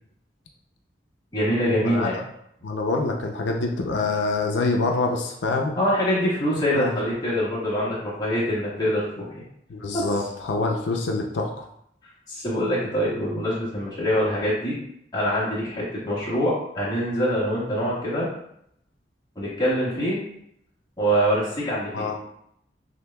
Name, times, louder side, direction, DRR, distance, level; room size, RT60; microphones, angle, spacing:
voice 1, 1.3-2.2 5.8-9.4 9.9-10.1 12.3-14.7 15.1-18.3 19.3-20.2 21.0-22.1, equal, 20° left, -8 dB, 1.5 m, -24 dB
voice 2, 2.6-5.8 6.7-6.9 9.7-11.5 21.9-22.2, left 3 dB, 90° left, 2 dB, 0.5 m, -25 dB
6.4 x 2.6 x 2.2 m, 0.73 s
head